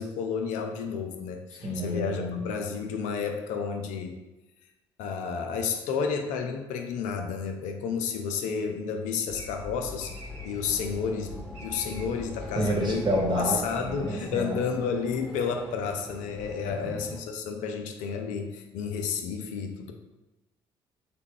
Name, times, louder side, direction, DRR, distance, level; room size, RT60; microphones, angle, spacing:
voice 1, 0.0-4.2 5.0-13.0 13.4-19.9, left 6 dB, 70° left, 4 dB, 0.4 m, -31 dB
voice 2, 1.6-2.4 12.6-14.6 16.6-17.0, equal, 35° right, -1 dB, 1.2 m, -29 dB
sound 1, 9.3-14.7, left 2 dB, 80° right, 1.5 m, -44 dB
sound 2, 9.8-17.2, right 1 dB, 5° left, 1.1 m, -45 dB
3.5 x 2.2 x 3.7 m, 1.0 s
hypercardioid pair, 50°, 13 cm